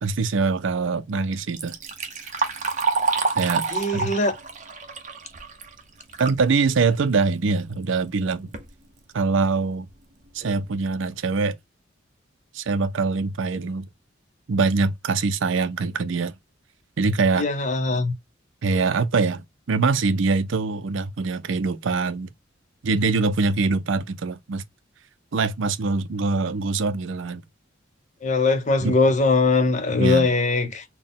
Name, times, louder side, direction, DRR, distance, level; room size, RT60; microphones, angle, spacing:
voice 1, 0.0-1.7 3.3-3.6 3.9-4.1 6.2-8.5 9.1-9.9 10.3-11.5 12.5-13.9 14.5-16.3 17.0-17.5 18.6-22.3 22.8-24.6 25.3-27.4 28.8-28.9 30.0-30.3, right 4 dB, 75° right, 0.5 m, -23 dB
Liquid, 1.3-6.4 6.8-6.9 7.8-7.9 8.3-8.7 9.3-9.4 9.9-10.0 10.4-10.7, right 4 dB, 40° right, 0.8 m, -28 dB
voice 2, 3.7-4.3 17.4-18.1 28.2-30.8, left 3 dB, 40° left, 0.6 m, -21 dB
4.1 x 2.2 x 3.6 m
head